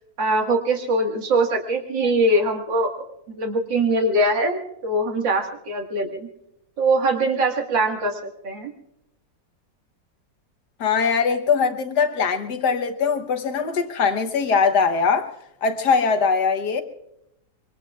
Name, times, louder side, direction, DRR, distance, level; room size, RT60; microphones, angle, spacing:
voice 1, 0.2-2.9 3.4-6.3 6.8-8.2 8.4-8.7, right 2 dB, 90° right, 2.5 m, -22 dB
voice 2, 10.8-15.3 15.6-16.8, left 5 dB, 65° left, 1.6 m, -21 dB
25.0 x 23.0 x 2.4 m
omnidirectional pair, 1.9 m